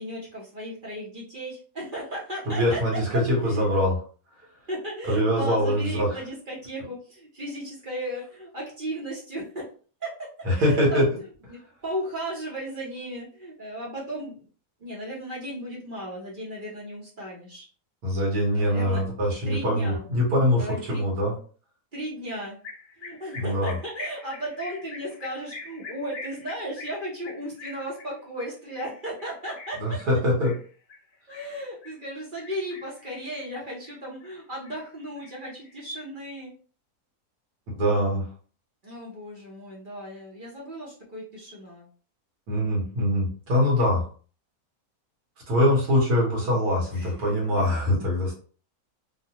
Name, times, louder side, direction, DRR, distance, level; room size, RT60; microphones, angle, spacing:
voice 1, 0.0-2.8 3.4-3.7 4.7-9.7 10.0-11.1 11.5-14.5 14.8-17.7 18.5-19.0 19.4-20.1 20.5-21.0 21.9-22.6 23.0-30.0 31.3-36.5 38.8-41.9 46.9-47.2, equal, 40° right, -4 dB, 0.8 m, -35 dB
voice 2, 2.5-4.0 5.1-6.1 10.4-11.1 18.0-21.3 23.3-23.7 29.8-30.5 37.7-38.3 42.5-44.0 45.5-48.4, equal, 75° right, -3 dB, 1.6 m, -23 dB
sound 1, 22.6-32.0 32.4-33.1 33.4-34.4 34.6-36.0, left 3 dB, 85° left, 0.4 m, -44 dB
3.2 x 2.1 x 2.8 m, 0.41 s
omnidirectional pair, 1.6 m